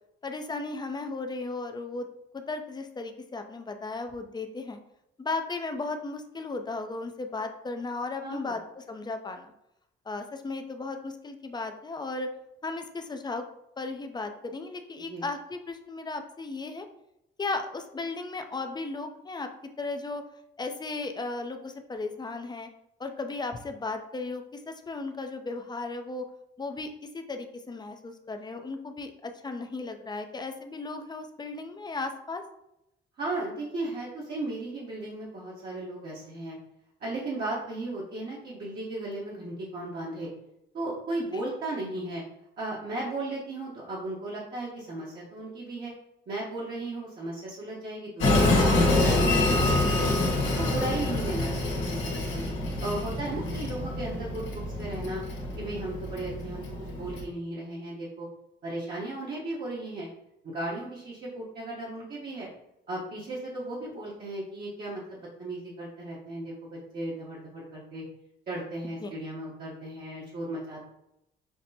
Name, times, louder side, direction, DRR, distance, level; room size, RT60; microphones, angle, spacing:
voice 1, 0.2-2.1 2.3-4.8 5.2-9.5 10.1-12.3 12.6-13.5 13.8-16.9 17.4-19.5 19.8-20.2 20.6-22.7 23.0-26.3 26.6-32.4 41.3-41.4 69.0-69.2, left 3 dB, 20° left, 6 dB, 0.5 m, -35 dB
voice 2, 8.2-8.6 15.0-15.2 33.2-36.6 37.0-40.3 40.7-42.2 42.6-45.9 46.3-50.2 50.6-52.4 52.8-55.2 55.6-58.3 58.6-60.1 60.4-62.5 62.9-68.0 68.5-70.8, right 2 dB, 50° right, -6 dB, 1.0 m, -36 dB
Train, 48.2-57.2, left 2 dB, 85° left, 1.3 m, -26 dB
5.8 x 2.1 x 2.7 m, 0.83 s
cardioid pair, 90°, 20 cm